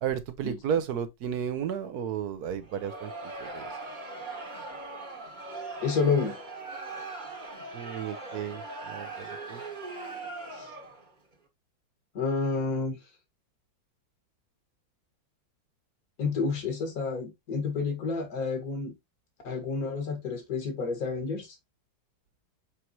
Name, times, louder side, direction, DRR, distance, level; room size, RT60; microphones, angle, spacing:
voice 1, 0.0-3.1 3.4-3.7 7.7-9.6, right 8 dB, 65° right, 1.1 m, -33 dB
Crowd, 2.6-11.1, right 3 dB, 25° right, 1.4 m, -40 dB
voice 2, 5.8-6.4 10.5-10.7 12.1-13.0 16.2-18.9 19.4-21.6, left 4 dB, 50° left, 2.4 m, -29 dB
7.0 x 4.5 x 3.0 m
omnidirectional pair, 2.1 m